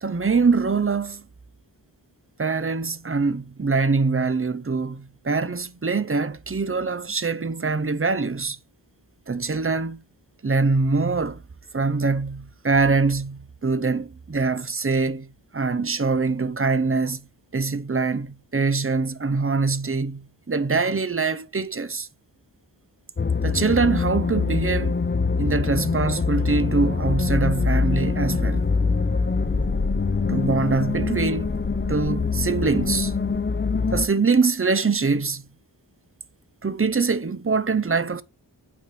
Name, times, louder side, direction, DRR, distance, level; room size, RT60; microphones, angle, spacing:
voice 1, 0.0-1.3 2.4-8.6 9.3-10.0 10.4-11.4 11.7-17.2 17.5-22.1 23.4-25.0 25.4-28.6 30.3-31.6 31.9-33.1 33.9-35.5 36.6-38.2, right 4 dB, 30° right, 0.7 m, -23 dB
sound 1, 23.2-34.1, left 4 dB, 25° left, 0.6 m, -24 dB
8.4 x 4.6 x 3.4 m
wide cardioid pair, 50°, 44 cm